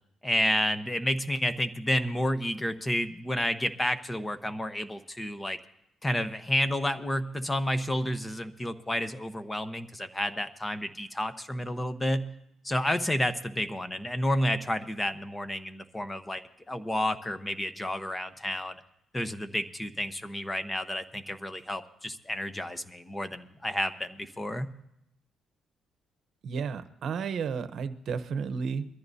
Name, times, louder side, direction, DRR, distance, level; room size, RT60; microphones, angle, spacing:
voice 1, 0.2-5.6 6.0-12.3 12.6-18.8 19.1-24.7, left 1 dB, 15° left, 10 dB, 1.0 m, -30 dB
voice 2, 26.4-28.9, right 6 dB, 65° right, 12 dB, 0.9 m, -32 dB
22.5 x 14.0 x 2.8 m, 0.81 s
cardioid pair, 90°, 0 cm